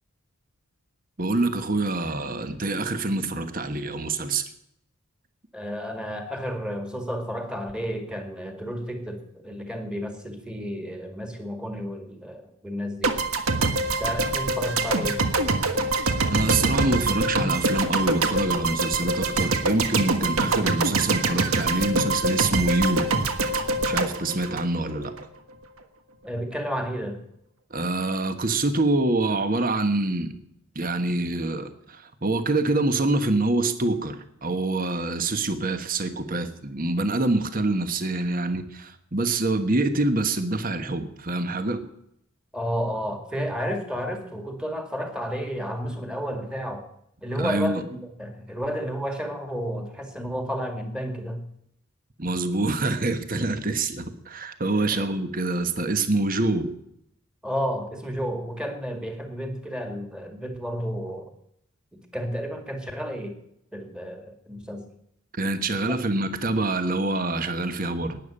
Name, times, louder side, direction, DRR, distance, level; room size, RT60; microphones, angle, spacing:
voice 1, 1.2-4.5 16.3-23.1 23.9-25.1 27.7-30.3 30.7-41.8 47.4-47.8 52.2-56.7 65.3-68.2, right 2 dB, 40° right, 9 dB, 1.2 m, -26 dB
voice 2, 5.5-13.2 14.0-15.2 26.2-27.2 42.5-46.9 47.2-51.5 54.9-55.1 57.4-61.3 61.9-63.4 63.7-64.8 65.7-66.0, equal, 5° right, 5 dB, 1.9 m, -32 dB
sound 1, 13.0-25.2, right 3 dB, 85° right, 1.5 m, -24 dB
12.0 x 9.9 x 8.8 m, 0.75 s
head